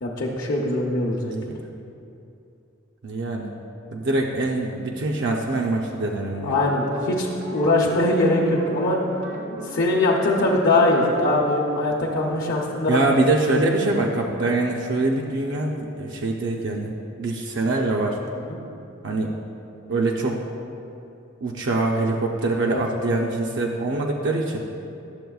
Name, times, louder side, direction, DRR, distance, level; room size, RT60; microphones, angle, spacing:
voice 1, 0.0-1.4 6.4-9.0 9.6-13.2 18.3-18.6 22.6-22.8, left 2 dB, 60° left, -6 dB, 0.7 m, -22 dB
voice 2, 1.3-1.6 3.0-3.5 3.9-6.5 12.9-16.9 17.2-18.2 19.0-19.3 19.9-20.4 21.4-24.6, right 2 dB, 60° right, 0 dB, 0.5 m, -24 dB
sound 1, 6.3-11.5, right 1 dB, 85° right, 1.1 m, -37 dB
10.5 x 7.1 x 2.3 m, 2.7 s
head